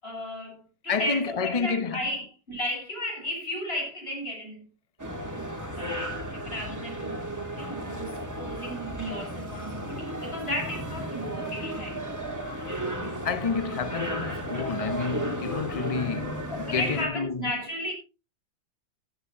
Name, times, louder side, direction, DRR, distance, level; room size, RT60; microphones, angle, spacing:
voice 1, 0.0-4.6 5.8-7.3 7.6-12.1 16.5-17.9, equal, 30° left, 8.0 m, -34 dB
voice 2, 0.9-2.0 13.0-17.5, left 5 dB, 60° left, 0.3 m, -30 dB
sound 1, 5.0-17.1, right 1 dB, 10° right, 2.5 m, -34 dB
15.5 x 14.0 x 2.7 m
omnidirectional pair, 2.2 m